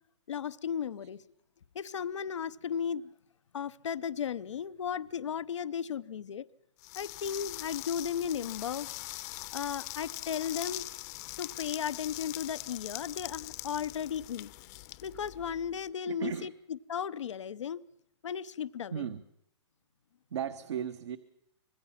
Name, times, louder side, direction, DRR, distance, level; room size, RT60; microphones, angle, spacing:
voice 1, 0.3-1.2 1.7-3.1 3.5-6.5 6.9-8.9 9.5-10.8 11.4-14.5 15.0-16.5 16.9-17.8 18.2-19.1, left 8 dB, 85° left, 0.8 m, -35 dB
sound 1, 6.8-15.8, left 19 dB, 35° left, 0.8 m, -42 dB
voice 2, 16.1-16.5 18.9-19.2 20.3-21.2, right 8 dB, 75° right, 1.4 m, -35 dB
25.5 x 20.5 x 5.8 m
hypercardioid pair, 150°, 15 cm